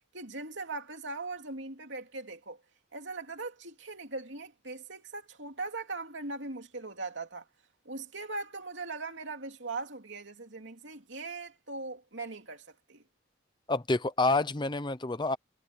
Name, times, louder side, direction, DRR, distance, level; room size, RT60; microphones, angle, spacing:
voice 1, 0.1-2.6 2.9-7.4 7.8-13.0, right 3 dB, 65° right, 3.0 m, -40 dB
voice 2, 13.7-15.4, left 2 dB, 25° left, 0.8 m, -28 dB
head